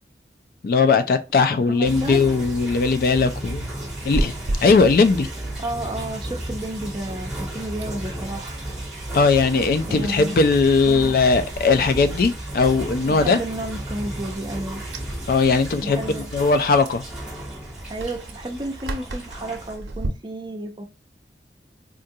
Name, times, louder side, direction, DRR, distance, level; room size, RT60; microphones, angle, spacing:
voice 1, 0.6-3.7 4.0-4.3 4.6-5.3 9.1-13.4 15.3-17.0, left 4 dB, 55° left, 0.3 m, -19 dB
voice 2, 1.5-2.3 5.6-8.6 9.0-9.1 9.9-10.4 10.9-11.1 13.0-14.8 15.8-16.2 17.9-20.8, right 1 dB, 25° right, 0.5 m, -32 dB
sound 1, 1.8-19.8, right 1 dB, 5° right, 1.0 m, -34 dB
Chewing mastication, 4.0-20.1, right 1 dB, 90° right, 0.6 m, -36 dB
3.7 x 2.2 x 2.7 m
head